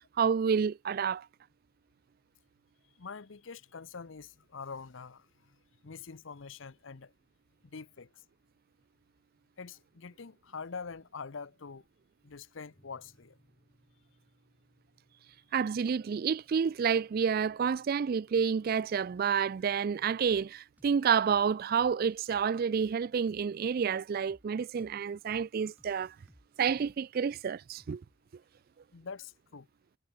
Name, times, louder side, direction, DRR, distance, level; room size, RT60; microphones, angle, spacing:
voice 1, 0.2-1.3 15.5-26.1 26.6-28.0, right 6 dB, 45° right, 0.3 m, -29 dB
voice 2, 3.0-5.6 5.8-7.1 7.6-8.2 9.6-11.8 12.2-13.4 28.9-29.7, left 5 dB, 65° left, 0.7 m, -45 dB
sound 1, 12.7-20.4, equal, 30° left, 7.9 m, -71 dB
sound 2, 20.3-20.5 20.8-21.0 21.3-21.5 21.8-23.5 23.8-23.9 24.3-24.5 24.8-25.0 25.3-25.5 25.8-27.3 27.8-28.2, equal, 5° right, 2.7 m, -62 dB
head